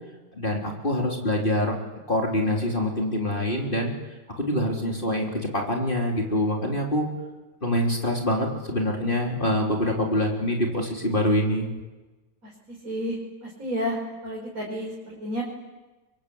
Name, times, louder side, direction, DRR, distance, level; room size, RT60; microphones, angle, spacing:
voice 1, 0.3-1.7 2.1-3.9 4.4-7.1 7.6-11.7, left 1 dB, 30° left, 0 dB, 3.7 m, -25 dB
voice 2, 12.4-15.4, equal, 50° right, -3 dB, 5.3 m, -32 dB
28.5 x 24.0 x 8.6 m, 1.2 s
omnidirectional pair, 1.9 m